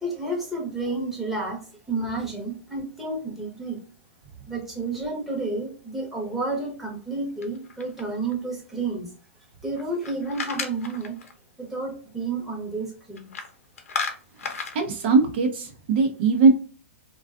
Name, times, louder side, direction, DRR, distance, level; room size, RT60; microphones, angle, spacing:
voice 1, 0.0-3.8 4.5-9.1 9.6-11.2 11.6-13.3, right 3 dB, 5° right, -3 dB, 0.8 m, -31 dB
sound 1, 7.4-8.3 9.7-11.3 13.2-13.5 13.8-14.8, left 5 dB, 85° left, 0.6 m, -33 dB
voice 2, 14.7-16.5, right 4 dB, 50° right, 4 dB, 0.5 m, -20 dB
2.5 x 2.2 x 2.4 m, 0.39 s
hypercardioid pair, 140°, 7 cm